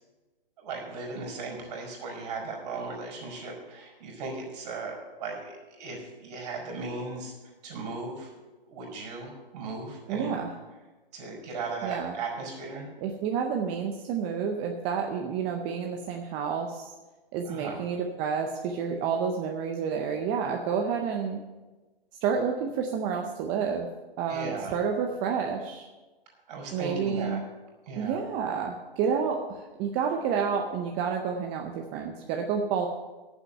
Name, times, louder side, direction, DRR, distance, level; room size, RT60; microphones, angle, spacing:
voice 1, 0.6-7.3 7.6-8.3 8.6-10.4 11.1-12.9 17.5-17.8 24.3-24.7 26.5-27.4 27.9-28.2, right 3 dB, 40° right, 0 dB, 4.6 m, -37 dB
voice 2, 10.1-10.5 11.8-12.2 13.0-16.9 17.3-21.4 22.2-23.9 24.2-25.9 26.7-27.4 28.0-32.9, right 6 dB, 15° right, 2 dB, 0.5 m, -29 dB
9.9 x 7.1 x 8.9 m, 1.2 s
hypercardioid pair, 145°, 30 cm